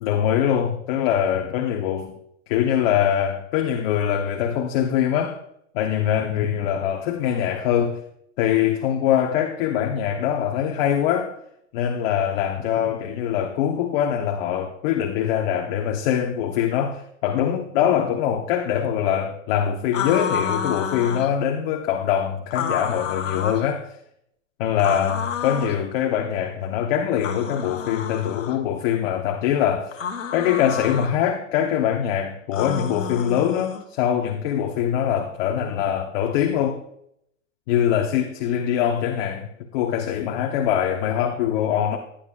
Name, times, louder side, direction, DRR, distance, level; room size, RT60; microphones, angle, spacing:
voice 1, 0.0-2.1 2.5-5.4 5.7-8.0 8.4-11.3 11.7-23.9 24.6-30.0 30.3-36.8 37.7-42.0, left 9 dB, 50° left, 1.1 m, -23 dB
sound 1, 19.9-21.3 22.5-23.7 24.8-25.8 27.2-28.6 29.9-31.1 32.5-33.8, left 6 dB, 90° left, 1.4 m, -29 dB
16.0 x 10.5 x 2.4 m
hypercardioid pair, 135°, 38 cm